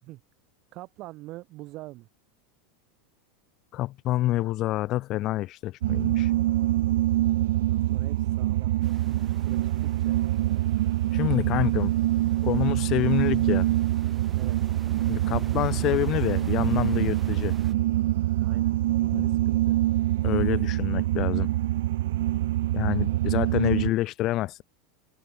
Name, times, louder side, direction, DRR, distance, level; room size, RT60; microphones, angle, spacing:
voice 1, 0.7-2.1 7.5-8.7 9.2-10.2 14.4-14.7 18.4-19.8, right 19 dB, 35° right, 3.9 m, -44 dB
voice 2, 3.7-6.3 11.1-11.9 12.4-13.7 15.1-17.5 19.1-19.3 20.2-21.5 22.7-24.6, left 16 dB, 30° left, 0.4 m, -27 dB
sound 1, 5.8-23.9, right 15 dB, 75° right, 0.8 m, -25 dB
sound 2, 8.8-17.7, right 5 dB, 10° right, 5.7 m, -45 dB
supercardioid pair, 170°, 0 cm